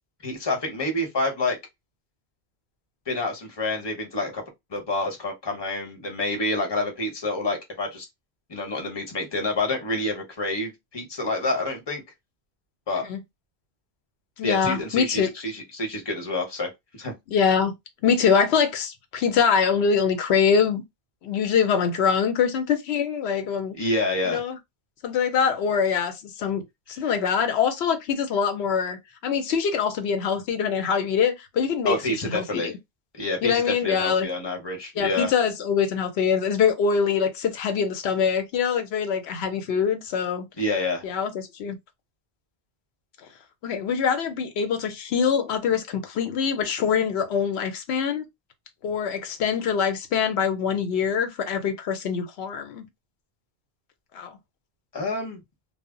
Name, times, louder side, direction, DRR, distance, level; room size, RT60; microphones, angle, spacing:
voice 1, 0.2-1.6 3.1-4.4 4.7-8.0 8.5-12.0 12.9-13.0 14.4-17.1 23.7-24.4 31.9-32.7 33.1-35.3 40.6-41.0 54.9-55.4, left 2 dB, 25° left, 0.8 m, -28 dB
voice 2, 14.4-15.3 17.3-17.7 18.0-20.8 21.2-23.8 24.2-24.6 25.0-26.6 26.9-32.0 32.2-32.7 33.4-34.3 35.0-40.4 41.0-41.8 43.6-48.2 48.8-52.9 54.1-54.4, left 6 dB, 85° left, 0.8 m, -24 dB
2.1 x 2.0 x 3.5 m
omnidirectional pair, 1.1 m